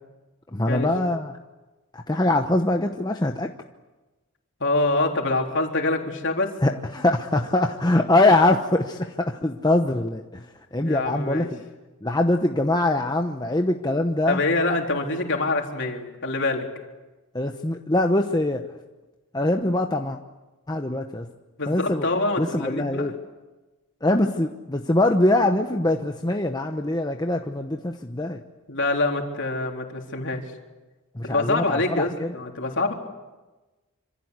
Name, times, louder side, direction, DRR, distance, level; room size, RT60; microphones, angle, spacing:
voice 1, 0.5-1.3 1.9-3.5 6.6-10.4 10.7-11.6 12.0-14.4 17.3-18.6 19.3-20.2 20.7-21.3 21.7-22.1 22.4-23.1 24.0-28.4 31.1-32.3, left 2 dB, 20° left, 4 dB, 1.0 m, -23 dB
voice 2, 4.6-6.5 10.8-11.5 14.3-16.7 21.6-23.1 28.7-30.4 31.2-32.9, left 2 dB, 55° left, 2 dB, 3.8 m, -25 dB
26.5 x 26.5 x 8.3 m, 1.2 s
head